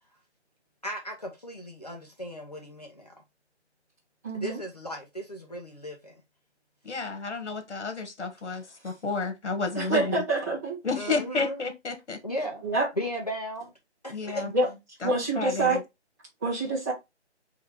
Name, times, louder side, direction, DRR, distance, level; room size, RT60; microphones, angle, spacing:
voice 1, 0.8-3.2 4.3-6.2 9.8-10.2 11.0-11.6 12.2-12.6 13.0-13.7 14.0-14.4, equal, 35° left, 0.7 m, -36 dB
voice 2, 4.2-4.6 9.7-10.8 12.6-12.9 14.5-14.7 15.0-15.8 16.4-16.9, right 2 dB, 15° right, 1.5 m, -26 dB
voice 3, 6.8-10.1 10.8-12.2 14.1-14.5 15.0-15.8, left 4 dB, 75° left, 1.6 m, -31 dB
3.8 x 3.2 x 4.4 m
hypercardioid pair, 175°, 35 cm